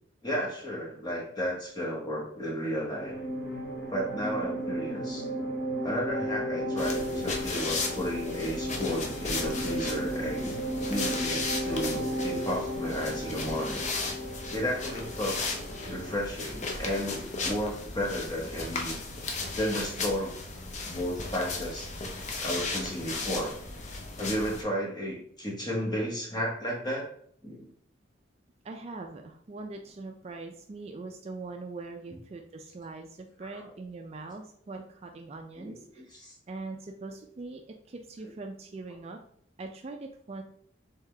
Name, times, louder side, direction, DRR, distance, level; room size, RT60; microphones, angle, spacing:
voice 1, 0.2-3.2 3.9-5.2 5.8-10.5 10.9-13.8 14.5-15.4 15.9-19.0 19.6-20.4 20.8-21.9 22.4-23.5 24.1-27.1 27.4-27.7 35.6-35.8 36.2-36.3, equal, 20° left, -2 dB, 1.1 m, -33 dB
sound 1, 2.9-16.2, equal, 50° left, 1.0 m, -34 dB
sound 2, 6.8-24.6, left 3 dB, 35° left, 0.5 m, -36 dB
voice 2, 28.6-39.2 39.6-40.4, right 3 dB, 30° right, 4 dB, 0.3 m, -42 dB
3.6 x 3.5 x 3.2 m, 0.64 s
head